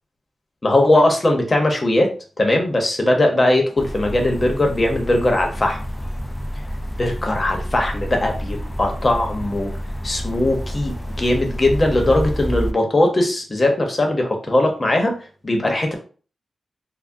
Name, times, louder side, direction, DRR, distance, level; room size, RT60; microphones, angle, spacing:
voice 1, 0.6-2.1 2.4-5.8 7.0-9.7 10.0-15.1 15.4-16.0, left 1 dB, 35° left, 2 dB, 0.9 m, -19 dB
sound 1, 3.8-12.7, equal, 20° left, 0.4 m, -29 dB
3.4 x 2.2 x 2.6 m, 0.39 s
cardioid pair, 60°, 0 cm